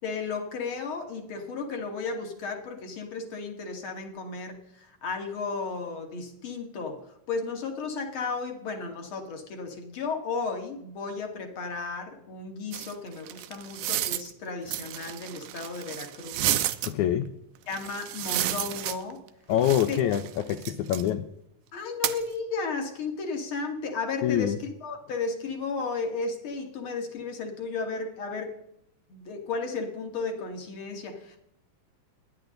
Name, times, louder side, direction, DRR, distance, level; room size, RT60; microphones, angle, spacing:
voice 1, 0.0-16.6 17.7-19.2 19.9-20.0 21.7-28.6 29.1-31.4, left 4 dB, 40° left, 4 dB, 2.7 m, -34 dB
sound 1, 12.7-14.3 14.7-16.9 17.7-19.3 19.6-21.1 22.0-22.2, right 13 dB, 75° right, 2.0 m, -31 dB
voice 2, 16.8-17.3 19.5-20.2 20.5-21.3 24.2-24.6, left 11 dB, 75° left, 8 dB, 1.9 m, -25 dB
29.5 x 10.5 x 3.9 m, 0.79 s
omnidirectional pair, 4.1 m